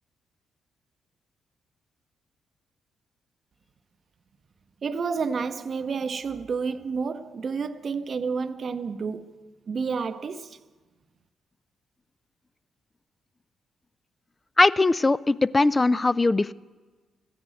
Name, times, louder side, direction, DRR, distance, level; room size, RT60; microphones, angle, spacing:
voice 1, 4.8-10.6, right 5 dB, 55° right, 0.7 m, -30 dB
voice 2, 14.6-16.5, left 3 dB, 25° left, 0.3 m, -20 dB
14.5 x 10.0 x 7.7 m
hypercardioid pair, 45°, 0 cm